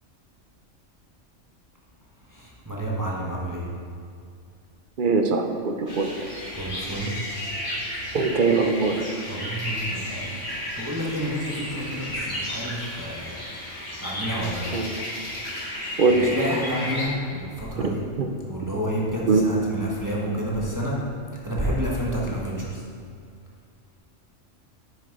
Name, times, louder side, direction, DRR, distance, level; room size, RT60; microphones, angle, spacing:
voice 1, 2.3-3.6 6.5-7.1 9.3-13.4 14.0-14.7 16.0-18.0 18.5-21.0 21.4-22.8, right 1 dB, 15° right, -5 dB, 1.2 m, -29 dB
voice 2, 5.0-6.2 8.1-9.1 14.7-14.9 16.0-16.4 17.8-17.9 18.2-18.3 19.2-19.5, right 4 dB, 50° right, 4 dB, 0.7 m, -22 dB
sound 1, 5.9-17.0, left 1 dB, 40° left, 2.0 m, -33 dB
9.8 x 6.2 x 4.7 m, 2.3 s
omnidirectional pair, 1.3 m